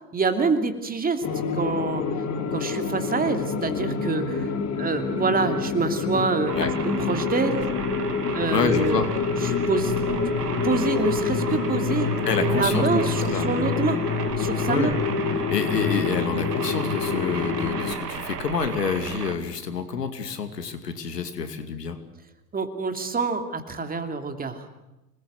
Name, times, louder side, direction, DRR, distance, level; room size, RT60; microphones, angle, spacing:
voice 1, 0.1-1.2 1.5-2.0 2.5-4.5 4.8-6.7 7.1-7.6 8.3-9.0 9.4-9.9 10.4-14.0 14.4-14.9 22.5-24.7, right 4 dB, 20° right, 6 dB, 2.8 m, -26 dB
sound 1, 1.2-17.9, left 5 dB, 35° left, 3.0 m, -27 dB
sound 2, 6.5-19.3, right 7 dB, 75° right, 2.3 m, -35 dB
voice 2, 8.5-9.1 12.2-13.0 13.3-13.5 14.7-14.9 15.3-22.0, left 6 dB, 80° left, 8 dB, 2.6 m, -27 dB
26.5 x 20.5 x 7.9 m, 0.97 s
figure-of-eight pair, 85°, 48 cm